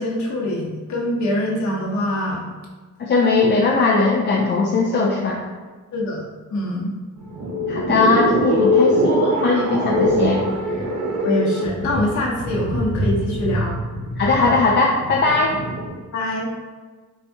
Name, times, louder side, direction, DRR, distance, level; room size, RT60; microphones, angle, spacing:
voice 1, 0.0-2.5 5.9-6.9 11.2-13.8 16.1-16.5, left 1 dB, 65° left, -3 dB, 0.8 m, -24 dB
voice 2, 3.0-5.4 7.7-10.4 14.2-15.5, left 3 dB, 35° left, -2 dB, 0.4 m, -19 dB
sound 1, 7.2-15.9, equal, 75° right, 1.0 m, -22 dB
4.1 x 2.6 x 3.4 m, 1.3 s
wide cardioid pair, 160°, 31 cm